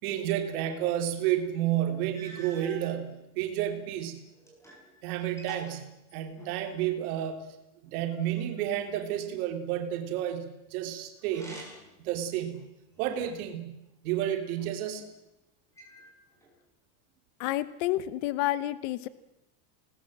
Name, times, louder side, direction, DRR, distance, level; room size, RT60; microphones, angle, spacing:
voice 1, 0.0-4.2 5.0-7.4 7.8-11.6 12.0-12.7 13.0-15.0, right 11 dB, 60° right, 6 dB, 3.3 m, -31 dB
sound 1, 2.1-2.9 3.7-4.9 5.2-6.7 11.2-12.0 12.5-13.5 14.3-15.1 15.8-16.5, right 2 dB, 5° left, 5.7 m, -48 dB
voice 2, 17.4-19.1, left 15 dB, 45° left, 16 dB, 1.1 m, -29 dB
28.0 x 19.5 x 7.7 m, 0.91 s
supercardioid pair, 175°, 50 cm